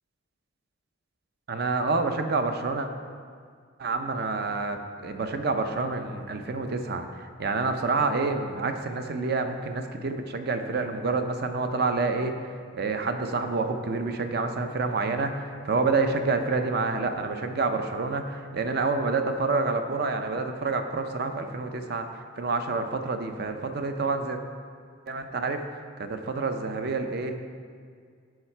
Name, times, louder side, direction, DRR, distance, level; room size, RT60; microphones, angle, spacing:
voice 1, 1.5-2.9 3.8-24.4 25.1-27.4, right 3 dB, 55° right, 7 dB, 0.6 m, -28 dB
11.5 x 4.8 x 4.5 m, 2.1 s
head